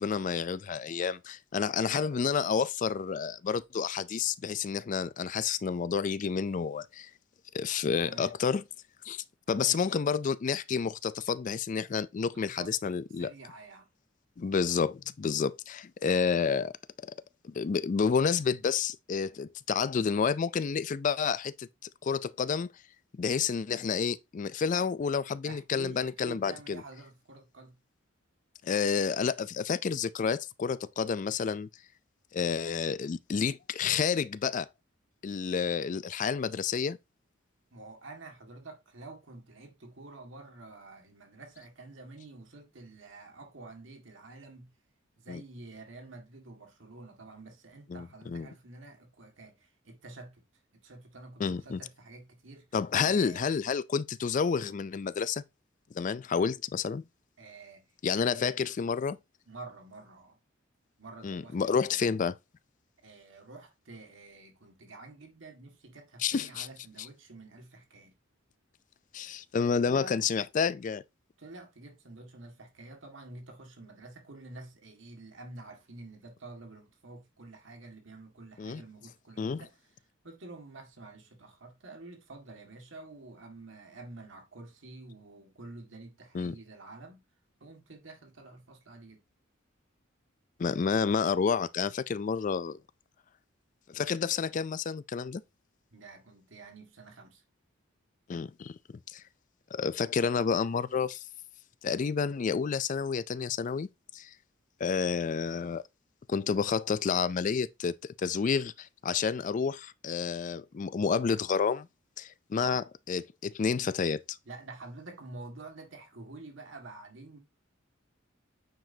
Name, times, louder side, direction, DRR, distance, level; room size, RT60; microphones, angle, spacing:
voice 1, 0.0-7.1 7.5-8.6 9.0-13.3 14.4-16.8 17.0-17.2 17.4-21.7 22.0-22.7 23.2-26.8 28.6-31.7 32.3-34.7 35.2-37.0 45.3-45.4 47.9-48.5 51.4-51.8 52.7-55.4 55.9-57.1 58.0-59.2 61.2-62.4 66.2-66.7 69.1-71.0 78.6-78.8 79.4-79.7 86.3-86.6 90.6-92.8 93.9-95.4 98.3-98.8 99.1-99.2 99.7-101.2 101.8-103.9 104.1-104.3 104.8-105.8 106.3-111.9 112.2-114.4, left 6 dB, 40° left, 0.3 m, -30 dB
voice 2, 8.0-8.4 9.5-9.8 12.2-12.7 13.2-13.9 25.4-27.8 37.7-44.7 45.2-50.4 50.8-52.7 53.0-53.5 57.4-57.8 58.1-58.5 59.5-60.4 61.0-62.1 63.0-68.1 69.6-70.2 71.4-79.8 80.2-87.2 87.6-89.2 95.9-97.4 112.5-112.8 114.5-117.4, right 2 dB, 70° right, 1.8 m, -48 dB
9.0 x 5.0 x 2.7 m
head